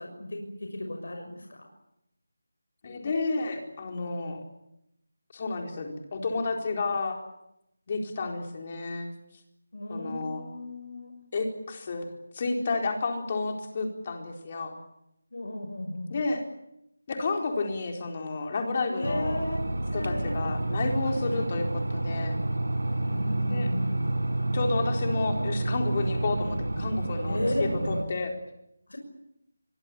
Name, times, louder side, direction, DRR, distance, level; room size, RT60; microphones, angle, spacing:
voice 1, 0.0-1.7 9.7-11.1 15.3-16.2 18.9-19.6 19.9-20.4 23.0-24.1 27.3-27.6 28.9-29.0, left 1 dB, 75° left, 3 dB, 6.3 m, -34 dB
voice 2, 2.8-4.4 5.3-7.2 7.9-9.1 9.9-10.4 11.3-12.1 12.3-14.7 16.1-16.4 17.1-19.4 19.9-22.4 23.5-23.7 24.5-28.3, left 3 dB, 30° left, 3 dB, 4.2 m, -31 dB
sound 1, 19.0-28.0, right 2 dB, 90° right, 5.4 m, -29 dB
24.5 x 22.5 x 8.5 m, 0.83 s
figure-of-eight pair, 170°, 0 cm